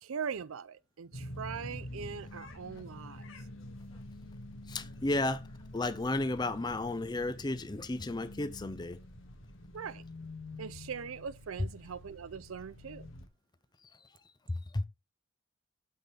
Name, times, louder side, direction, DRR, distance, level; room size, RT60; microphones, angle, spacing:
voice 1, 0.0-3.3 9.7-10.0 10.6-13.1, right 6 dB, 80° right, 0.5 m, -41 dB
sound 1, 1.1-13.3, left 1 dB, 70° left, 1.6 m, -47 dB
voice 2, 4.7-5.4 5.7-9.0 14.7-14.9, left 2 dB, 20° left, 0.5 m, -33 dB
8.6 x 3.9 x 5.8 m
head